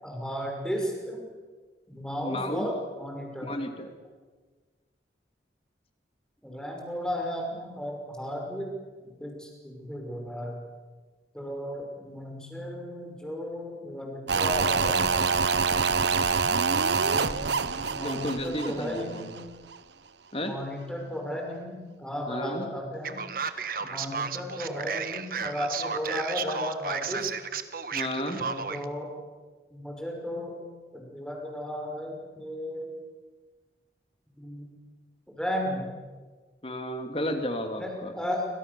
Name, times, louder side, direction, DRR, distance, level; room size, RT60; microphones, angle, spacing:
voice 1, 0.0-1.2 1.9-3.5 6.4-8.7 9.0-10.6 11.3-15.1 16.9-17.6 17.9-19.3 20.3-23.2 23.8-27.3 28.3-29.1 29.7-30.6 30.9-32.9 34.4-34.7 35.3-35.9 37.8-38.5, equal, 5° left, 0 dB, 5.8 m, -35 dB
voice 2, 2.2-2.7 3.5-3.9 18.0-19.3 20.3-20.5 22.3-22.7 27.9-28.4 36.6-38.1, equal, 30° left, 5 dB, 2.9 m, -32 dB
sound 1, 14.3-19.4 19.7-19.8, right 5 dB, 75° right, 1.0 m, -26 dB
Male speech man speaking, 23.0-28.9, right 6 dB, 50° right, 1.4 m, -33 dB
28.0 x 26.0 x 7.1 m, 1.4 s
head